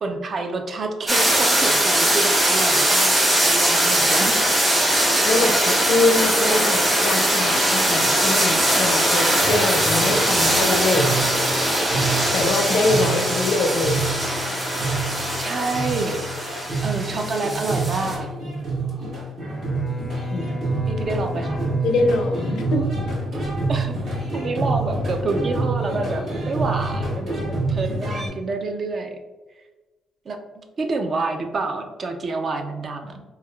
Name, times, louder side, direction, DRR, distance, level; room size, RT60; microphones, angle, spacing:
voice 1, 0.0-4.4 15.1-18.3 20.9-21.6 23.7-23.9 24.3-29.2 30.3-30.4 30.8-33.2, right 3 dB, 45° right, 4 dB, 0.4 m, -28 dB
sound 1, 1.1-18.2, right 1 dB, 20° right, 1.1 m, -21 dB
voice 2, 5.2-11.1 12.3-14.0 20.3-20.6 21.8-22.9, left 2 dB, 75° left, 5 dB, 0.4 m, -23 dB
sound 2, 9.4-28.3, right 3 dB, 65° right, 1.3 m, -28 dB
Bowed string instrument, 19.3-23.7, left 1 dB, 15° left, 0.5 m, -32 dB
3.3 x 2.2 x 2.2 m, 1.2 s
cardioid pair, 90°, 0 cm